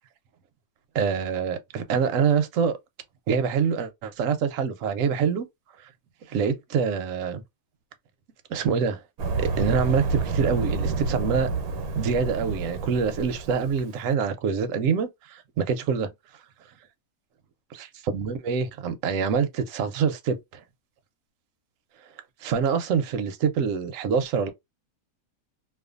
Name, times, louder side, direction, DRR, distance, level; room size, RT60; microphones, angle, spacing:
voice 1, 0.9-2.8 3.3-5.5 6.3-7.4 8.5-9.0 9.4-11.5 11.9-16.1 17.7-20.6 22.4-24.5, right 6 dB, 70° right, 1.0 m, -25 dB
sound 1, 9.2-13.8, right 3 dB, 85° right, 1.1 m, -29 dB
2.5 x 2.5 x 2.4 m
omnidirectional pair, 1.5 m